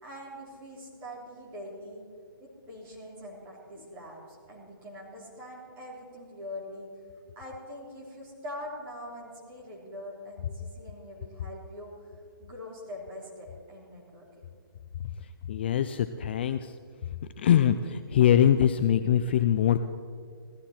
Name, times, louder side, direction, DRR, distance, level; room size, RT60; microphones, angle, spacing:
voice 1, 0.0-2.0 2.4-6.9 7.3-12.1 12.4-14.4, left 1 dB, 20° right, -4 dB, 3.3 m, -43 dB
voice 2, 15.5-16.7 17.4-19.8, left 9 dB, 30° left, 10 dB, 0.3 m, -23 dB
17.0 x 13.5 x 4.3 m, 2.2 s
hypercardioid pair, 160°, 12 cm